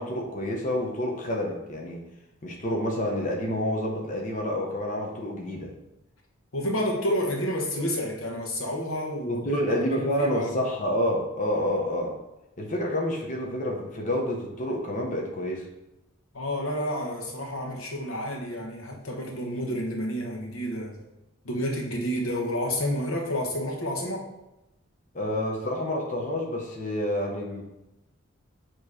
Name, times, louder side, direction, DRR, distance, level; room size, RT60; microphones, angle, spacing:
voice 1, 0.0-2.0 2.4-5.7 9.2-12.2 12.6-15.7 25.1-27.6, equal, 35° left, 0 dB, 0.8 m, -28 dB
voice 2, 6.5-9.6 9.9-10.7 16.3-21.0 21.4-24.3, equal, 85° left, 0 dB, 1.1 m, -30 dB
7.2 x 3.1 x 4.8 m, 0.93 s
head